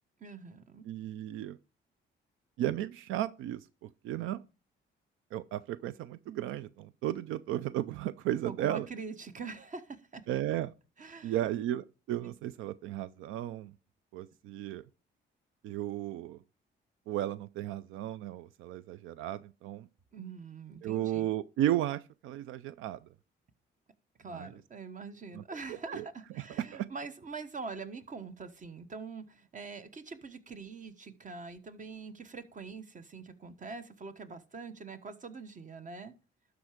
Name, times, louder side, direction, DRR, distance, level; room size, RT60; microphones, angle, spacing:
voice 1, 0.2-0.8 8.4-10.2 11.0-11.4 20.1-21.3 24.2-36.1, right 4 dB, 40° right, 1.2 m, -44 dB
voice 2, 0.8-1.6 2.6-4.4 5.3-8.9 10.3-10.7 11.2-13.7 14.1-14.9 15.6-16.4 17.1-19.9 20.8-23.1 24.3-24.5 25.3-25.4 25.7-26.1 26.4-26.9, right 13 dB, 85° right, 0.4 m, -34 dB
12.0 x 4.8 x 4.9 m
cardioid pair, 90°, 20 cm